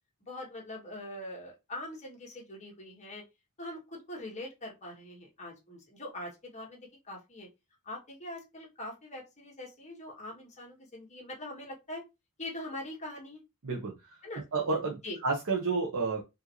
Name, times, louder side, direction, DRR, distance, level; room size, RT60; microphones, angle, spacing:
voice 1, 0.2-3.2 3.6-7.5 7.8-12.0 12.4-13.4 14.2-14.4 15.0-15.2, left 1 dB, 35° left, 1.5 m, -43 dB
voice 2, 13.6-14.2 14.5-16.2, right 4 dB, 70° right, 0.9 m, -31 dB
4.8 x 2.6 x 3.0 m
head